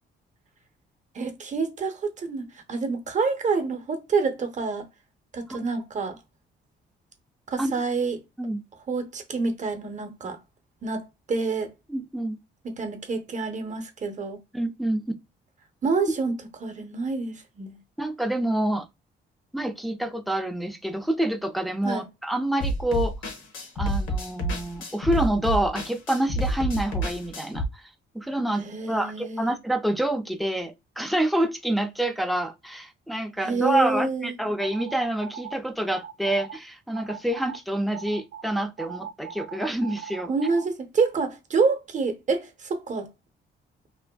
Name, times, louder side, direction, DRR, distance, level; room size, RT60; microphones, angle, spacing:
voice 1, 1.1-4.9 5.3-6.2 7.5-8.2 8.9-10.4 10.8-11.7 12.6-14.4 15.8-16.4 16.6-17.8 21.8-22.1 28.6-29.5 33.4-34.4 40.3-43.1, right 4 dB, 40° right, 0.7 m, -27 dB
voice 2, 11.9-12.4 14.5-15.0 18.0-18.9 19.5-23.1 23.8-27.8 28.1-40.3, right 1 dB, ahead, 0.4 m, -27 dB
sound 1, 22.6-27.7, right 1 dB, 75° left, 0.9 m, -29 dB
sound 2, 34.6-35.5 35.9-36.6 36.9-37.6 37.9-40.7, right 8 dB, 80° right, 0.5 m, -39 dB
2.5 x 2.4 x 2.2 m
cardioid pair, 90°, 20 cm